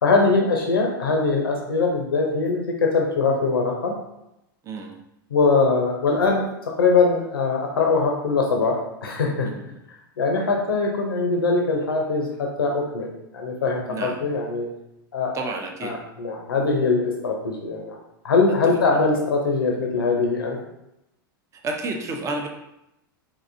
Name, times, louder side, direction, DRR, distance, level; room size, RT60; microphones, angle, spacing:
voice 1, 0.0-3.9 5.3-6.4 6.8-9.5 10.2-13.1 13.3-14.7 15.1-15.3 15.8-18.0 18.2-20.6, left 4 dB, 90° left, 0 dB, 0.6 m, -22 dB
voice 2, 4.6-4.9 9.5-9.6 13.9-14.2 15.3-15.9 21.5-22.5, right 2 dB, 25° right, 3 dB, 0.6 m, -30 dB
3.8 x 2.6 x 2.6 m, 0.86 s
hypercardioid pair, 100°, 12 cm